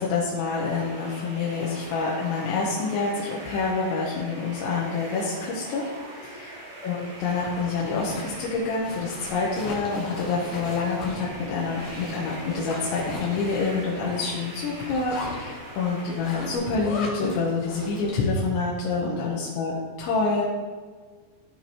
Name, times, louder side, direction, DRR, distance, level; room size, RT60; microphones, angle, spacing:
voice 1, 0.0-5.8 6.2-6.5 6.8-19.7 20.0-20.4, left 4 dB, 80° left, -5 dB, 3.3 m, -27 dB
sound 1, 0.6-16.6, right 1 dB, 65° right, 4.1 m, -42 dB
Zipper (clothing), 7.2-18.4, left 2 dB, 60° left, 2.8 m, -39 dB
14.0 x 5.6 x 2.9 m, 1.5 s
omnidirectional pair, 5.3 m